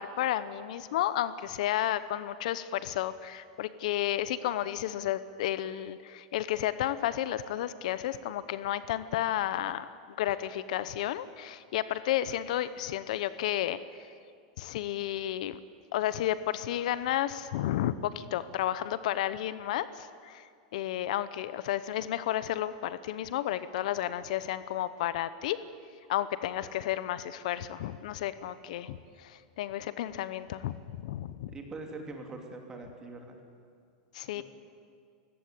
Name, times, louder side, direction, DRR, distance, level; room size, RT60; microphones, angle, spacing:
voice 1, 0.0-9.9 10.2-14.1 14.6-15.6 15.9-20.4 20.7-25.6 26.1-31.5 34.1-34.4, left 12 dB, 65° left, 14 dB, 0.9 m, -32 dB
voice 2, 31.5-33.4 34.3-34.4, right 3 dB, 15° right, 3 dB, 3.1 m, -43 dB
30.0 x 17.0 x 8.5 m, 2.2 s
supercardioid pair, 155°, 4 cm